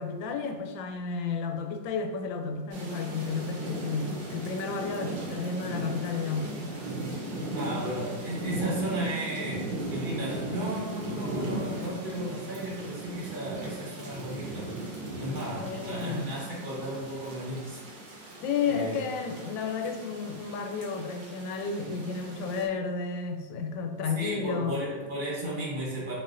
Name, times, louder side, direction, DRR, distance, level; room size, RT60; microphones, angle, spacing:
voice 1, 0.0-6.5 15.6-16.3 18.4-24.8, left 5 dB, 85° left, 5 dB, 1.3 m, -32 dB
sound 1, 2.7-22.7, right 1 dB, 85° right, 1.7 m, -37 dB
voice 2, 7.5-14.7 15.2-17.8 18.6-19.0 24.2-26.2, right 1 dB, 30° right, -5 dB, 1.1 m, -34 dB
4.3 x 4.1 x 2.5 m, 1.3 s
omnidirectional pair, 2.0 m